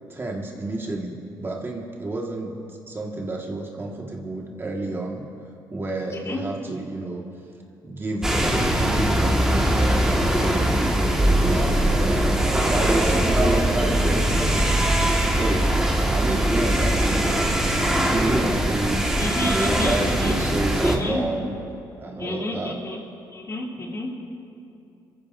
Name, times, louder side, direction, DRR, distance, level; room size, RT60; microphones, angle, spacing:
voice 1, 0.1-5.2 5.7-7.2 7.8-12.2 12.7-14.7 15.2-15.7 16.1-19.1 19.7-21.5 22.0-22.7, right 2 dB, 30° right, 0 dB, 1.6 m, -30 dB
sound 1, 8.2-21.0, right 1 dB, 5° right, 1.6 m, -21 dB
voice 2, 19.2-20.4 20.8-21.2 22.2-23.0 23.3-24.2, left 1 dB, 40° left, -2 dB, 3.0 m, -30 dB
25.0 x 14.5 x 2.6 m, 2.7 s
cardioid pair, 95°, 8 cm